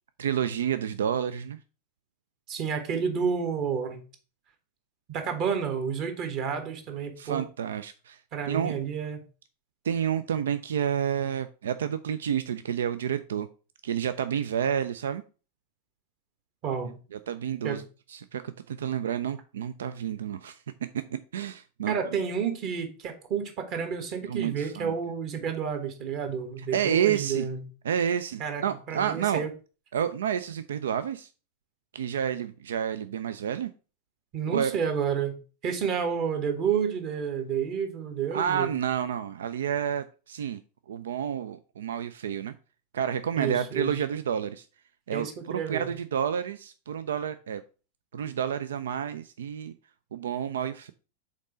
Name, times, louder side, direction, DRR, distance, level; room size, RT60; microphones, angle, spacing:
voice 1, 0.2-1.6 7.2-8.2 8.5-8.8 9.8-13.5 13.8-15.2 17.1-17.8 18.1-20.6 20.9-22.0 24.3-24.9 26.7-27.5 27.8-29.4 29.9-31.3 31.9-33.7 34.5-34.7 38.3-40.6 40.9-42.5 42.9-44.7 45.1-47.6 48.1-49.7 50.1-50.9, right 8 dB, 65° right, 13 dB, 0.3 m, -29 dB
voice 2, 2.5-4.0 5.1-7.4 8.3-9.2 16.6-17.0 17.6-17.8 21.9-27.6 28.4-29.5 34.3-38.7 43.4-44.0 45.1-45.9, right 7 dB, 40° right, 6 dB, 1.3 m, -30 dB
5.2 x 4.0 x 4.9 m, 0.35 s
figure-of-eight pair, 90°, 0 cm